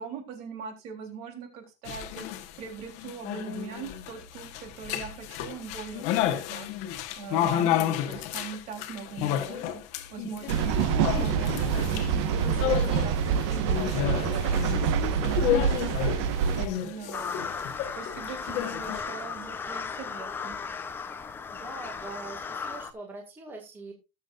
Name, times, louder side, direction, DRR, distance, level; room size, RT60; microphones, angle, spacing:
voice 1, 0.0-9.8 10.1-17.5 18.0-20.6, right 6 dB, 50° right, 4 dB, 3.5 m, -41 dB
sound 1, 1.9-19.0, left 11 dB, 55° left, 1.3 m, -31 dB
sound 2, 10.5-16.7, right 7 dB, 75° right, 1.3 m, -26 dB
sound 3, 17.1-22.9, left 5 dB, 15° left, 0.7 m, -36 dB
voice 2, 21.5-23.9, right 3 dB, 15° right, 1 dB, 2.0 m, -43 dB
19.5 x 7.4 x 2.5 m, 0.26 s
cardioid pair, 175°, 14 cm